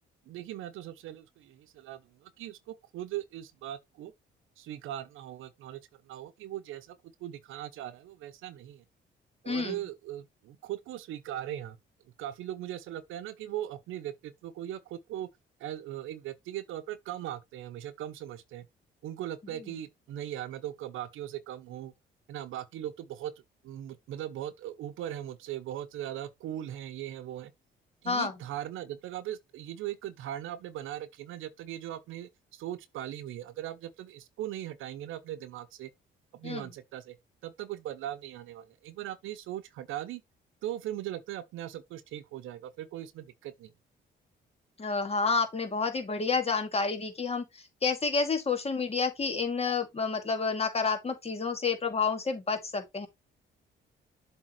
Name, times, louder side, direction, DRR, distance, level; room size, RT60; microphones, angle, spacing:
voice 1, 0.3-4.1 4.6-5.8 6.1-8.8 9.4-11.8 12.2-15.3 15.6-18.7 19.0-21.9 22.3-23.3 23.6-27.5 28.0-35.9 36.3-37.1 37.4-40.2 40.6-43.7, right 12 dB, 85° right, 0.9 m, -39 dB
voice 2, 9.5-9.8 19.6-19.7 28.1-28.3 36.4-36.7 44.8-53.1, left 4 dB, 30° left, 2.2 m, -29 dB
7.6 x 3.7 x 4.4 m
cardioid pair, 90°, 20 cm